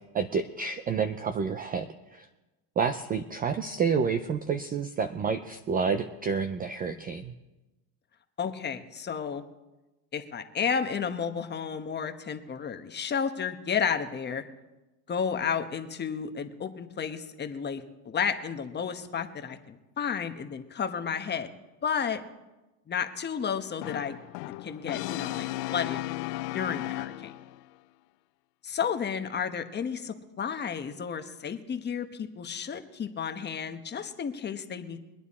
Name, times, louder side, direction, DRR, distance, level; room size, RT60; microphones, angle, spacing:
voice 1, 0.1-2.3 2.8-7.3, right 5 dB, 20° right, 9 dB, 0.4 m, -29 dB
voice 2, 8.4-9.4 10.1-14.4 15.1-21.5 21.8-22.2 22.9-24.2 24.4-26.0 26.5-27.3 28.6-35.0, left 7 dB, 20° left, 7 dB, 1.1 m, -32 dB
Brass instrument, 23.8-27.6, left 18 dB, 80° left, 0.6 m, -35 dB
23.5 x 9.4 x 4.2 m, 1.1 s
supercardioid pair, 130°, 48 cm